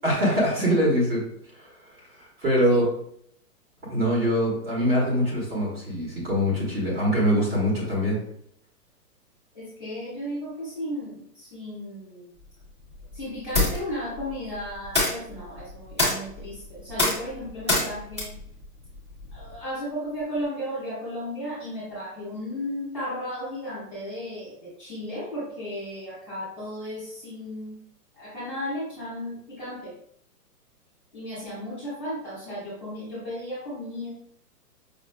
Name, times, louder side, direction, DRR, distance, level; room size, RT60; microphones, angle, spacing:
voice 1, 0.0-1.2 1.5-1.7 2.2-2.8 3.9-8.2, equal, 35° right, -3 dB, 1.3 m, -23 dB
voice 2, 9.5-12.3 13.1-18.3 19.3-27.8 28.1-29.9 31.1-34.1, equal, ahead, -14 dB, 1.2 m, -34 dB
sound 1, 12.4-19.6, left 2 dB, 20° right, 0.5 m, -29 dB
5.3 x 2.5 x 2.3 m, 0.68 s
hypercardioid pair, 175°, 48 cm